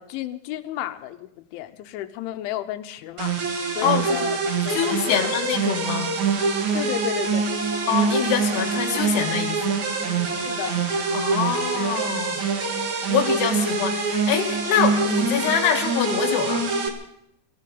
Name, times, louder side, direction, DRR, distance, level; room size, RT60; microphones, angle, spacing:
voice 1, 0.0-3.4 3.8-5.3 6.7-7.5 10.5-10.8, left 12 dB, 85° left, 3.3 m, -32 dB
sound 1, 3.2-16.9, right 4 dB, 55° right, 2.3 m, -25 dB
voice 2, 3.8-4.3 4.7-6.1 7.9-9.6 11.1-12.4 13.1-16.7, left 8 dB, 65° left, 3.5 m, -25 dB
25.5 x 14.5 x 3.8 m
omnidirectional pair, 5.3 m